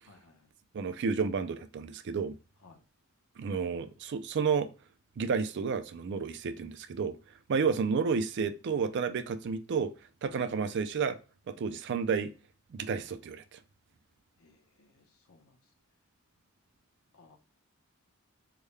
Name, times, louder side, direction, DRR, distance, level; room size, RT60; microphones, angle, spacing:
voice 1, 0.0-0.5 2.6-2.8 7.5-7.7 14.4-15.6 17.1-17.4, left 3 dB, 80° left, 0.8 m, -60 dB
voice 2, 0.7-2.4 3.4-4.7 5.2-7.2 7.5-9.9 10.2-11.2 11.5-12.3 12.7-13.6, right 5 dB, 55° right, 0.4 m, -31 dB
3.6 x 2.1 x 3.1 m
head